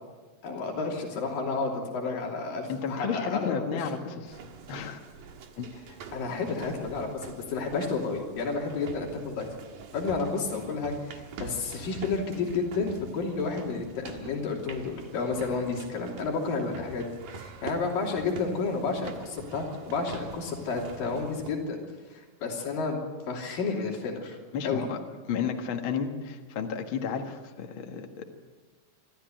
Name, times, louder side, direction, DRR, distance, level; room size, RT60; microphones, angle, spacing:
voice 1, 0.4-3.9 6.1-9.5 9.9-21.8 22.1-24.4 24.6-24.9, left 4 dB, 90° left, 0 dB, 4.7 m, -31 dB
voice 2, 2.7-4.4 4.7-5.0 5.6-6.0 6.3-6.4 24.5-25.0 25.3-28.3, left 7 dB, 45° left, 3 dB, 2.1 m, -33 dB
sound 1, 4.3-21.5, right 5 dB, 70° right, 3.2 m, -45 dB
26.0 x 13.5 x 9.2 m, 1.4 s
omnidirectional pair, 3.9 m